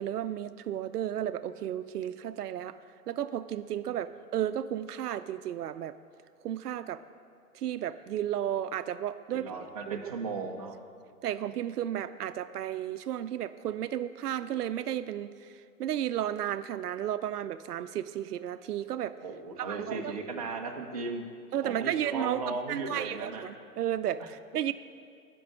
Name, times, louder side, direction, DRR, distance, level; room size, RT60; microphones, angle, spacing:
voice 1, 0.0-2.7 3.1-6.0 6.4-7.0 7.5-9.5 9.9-10.0 11.2-15.3 15.8-19.2 19.6-20.1 21.5-22.4 22.7-24.7, right 11 dB, 80° right, 13 dB, 0.6 m, -33 dB
voice 2, 9.3-10.8 19.2-21.2 21.6-23.4, right 3 dB, 25° right, 0 dB, 0.5 m, -36 dB
12.0 x 5.3 x 6.2 m, 2.4 s
hypercardioid pair, 165°, 46 cm